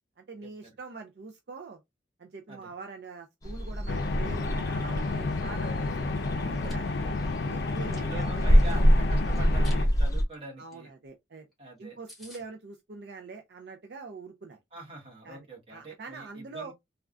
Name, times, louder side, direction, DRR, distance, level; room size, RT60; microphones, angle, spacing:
voice 1, 0.2-1.8 2.2-5.9 6.4-7.0 7.5-8.6 10.6-11.5 11.8-14.6 15.2-16.7, right 4 dB, 60° right, 0.4 m, -44 dB
sound 1, 3.4-10.2, equal, 20° left, 0.6 m, -26 dB
sound 2, 3.9-9.8, left 3 dB, 65° left, 0.4 m, -31 dB
Chewing mastication, 6.5-6.7 7.3-8.7 9.3-9.8 10.2-10.3 10.7-10.8 11.1-11.2 11.5-11.6 11.8-11.9 12.1-12.4, left 1 dB, ahead, 1.1 m, -50 dB
voice 2, 7.9-10.9 11.6-12.0 14.7-16.7, right 2 dB, 30° right, 1.2 m, -44 dB
3.4 x 2.2 x 2.4 m
head